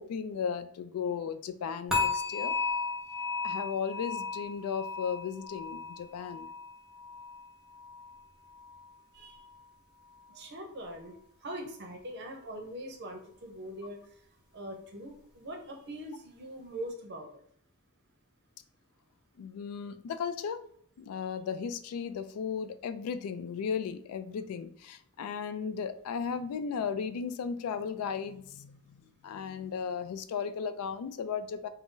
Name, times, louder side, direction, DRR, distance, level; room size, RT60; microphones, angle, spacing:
voice 1, 0.0-2.5 3.4-6.5 19.4-20.6 21.0-31.7, left 6 dB, 80° left, 15 dB, 0.3 m, -35 dB
sound 1, 1.9-9.0 9.3-9.7 10.2-10.3, left 4 dB, 5° right, 0.7 m, -35 dB
voice 2, 9.1-9.5 10.3-11.1 11.4-14.0 14.5-17.4, right 1 dB, 50° right, 2 dB, 0.6 m, -42 dB
2.6 x 2.0 x 3.6 m, 0.63 s
head